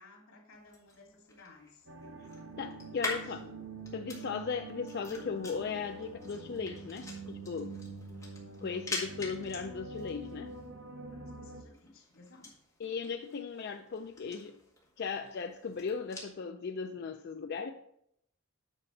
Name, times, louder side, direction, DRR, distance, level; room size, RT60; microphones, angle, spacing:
voice 1, 0.0-1.9 2.8-3.6 11.0-12.5, left 3 dB, 85° left, -1 dB, 2.6 m, -57 dB
sound 1, 0.5-16.3, left 2 dB, 15° left, 1.8 m, -46 dB
sound 2, 1.9-11.6, right 3 dB, 65° right, 0.8 m, -46 dB
voice 2, 2.6-3.4 3.9-7.7 8.6-10.5 12.8-14.6 15.0-17.7, left 5 dB, 50° left, 6 dB, 0.4 m, -37 dB
9.0 x 5.8 x 3.9 m, 0.74 s
head